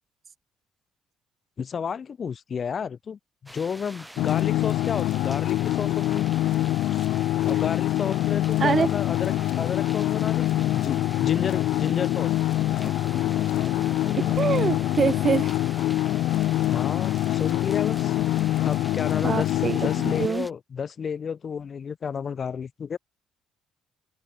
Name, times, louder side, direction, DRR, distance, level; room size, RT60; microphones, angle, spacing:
voice 1, 1.6-6.3 6.9-7.0 7.4-12.4 12.7-12.9 16.7-18.2 18.6-23.0, left 6 dB, 40° left, 2.0 m, -32 dB
sound 1, 3.5-20.5, right 1 dB, 5° right, 3.2 m, -43 dB
sound 2, 4.2-20.3, left 15 dB, 75° left, 1.1 m, -25 dB
voice 2, 14.2-15.5 19.2-20.5, right 6 dB, 35° right, 1.9 m, -25 dB
open air
cardioid pair, 105°, 0 cm